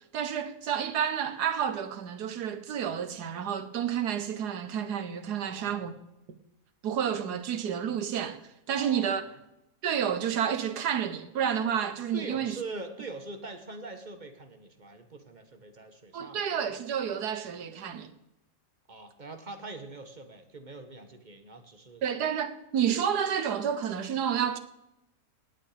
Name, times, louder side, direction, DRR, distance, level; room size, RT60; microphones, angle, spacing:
voice 1, 0.1-5.9 6.8-8.4 8.7-9.2 9.8-12.6 16.1-18.1 22.0-24.6, right 8 dB, 75° right, 1.6 m, -30 dB
voice 2, 5.4-5.9 8.7-9.3 12.1-16.4 18.9-22.0, right 3 dB, 30° right, 1.5 m, -43 dB
18.0 x 8.8 x 5.1 m
omnidirectional pair, 1.7 m